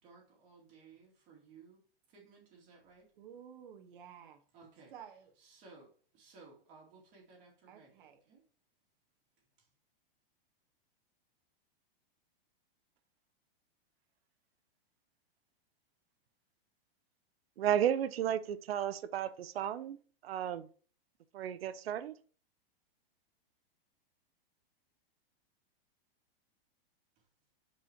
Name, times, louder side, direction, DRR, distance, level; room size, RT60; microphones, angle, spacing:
voice 1, 0.0-1.8 2.1-3.1 4.5-4.9 5.4-8.0 8.3-8.4, right 4 dB, 25° right, 2.4 m, -58 dB
voice 2, 3.2-4.4 4.9-5.3 7.7-8.2, right 8 dB, 60° right, 1.3 m, -52 dB
voice 3, 17.6-20.0 20.2-20.7 21.3-22.1, right 10 dB, 80° right, 0.8 m, -33 dB
11.0 x 4.9 x 2.9 m
supercardioid pair, 170°, 30 cm